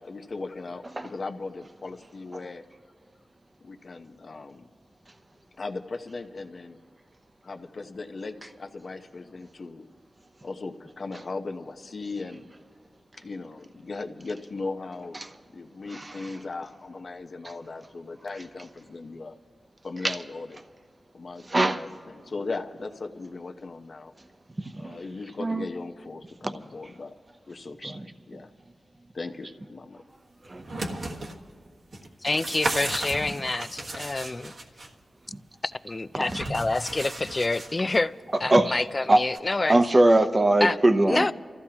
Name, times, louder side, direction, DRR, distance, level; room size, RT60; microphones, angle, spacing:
voice 1, 0.0-2.7 3.6-4.7 5.6-6.8 7.4-9.9 10.4-12.5 13.2-19.3 19.8-20.6 21.1-24.1 24.8-27.1 27.5-28.5 29.1-30.0 30.7-30.8, left 3 dB, 60° left, 0.9 m, -38 dB
voice 2, 15.9-16.3 20.0-20.2 21.5-21.9 24.6-25.0 25.4-25.7 26.4-26.5 27.8-28.1 30.5-30.7 30.9-31.2 33.3-33.4 35.3-35.4 36.1-36.4 38.5-38.8 39.1-39.2 39.7-41.3, right 1 dB, 30° right, 0.8 m, -22 dB
sound 1, 30.4-31.3 31.9-34.9 36.2-38.0 39.3-39.4, right 2 dB, 75° right, 1.5 m, -34 dB
voice 3, 32.2-34.5 35.6-38.1 38.4-39.8 40.6-40.8 41.1-41.3, left 2 dB, 35° left, 0.4 m, -27 dB
30.0 x 14.5 x 2.9 m
wide cardioid pair, 75°, 0 cm